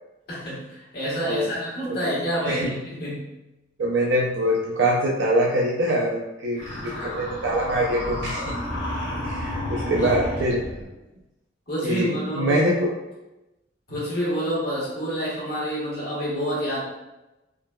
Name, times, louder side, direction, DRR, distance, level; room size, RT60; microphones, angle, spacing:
voice 1, 0.3-3.3 6.8-7.0 9.8-10.1 11.7-12.6 13.9-16.8, equal, 55° left, -7 dB, 1.3 m, -28 dB
voice 2, 3.8-8.6 9.2-10.6 11.8-12.1 12.4-12.9, right 1 dB, 75° right, -3 dB, 0.4 m, -24 dB
sound 1, 6.6-10.9, left 1 dB, 40° left, 1.1 m, -31 dB
3.7 x 2.2 x 2.2 m, 0.98 s
head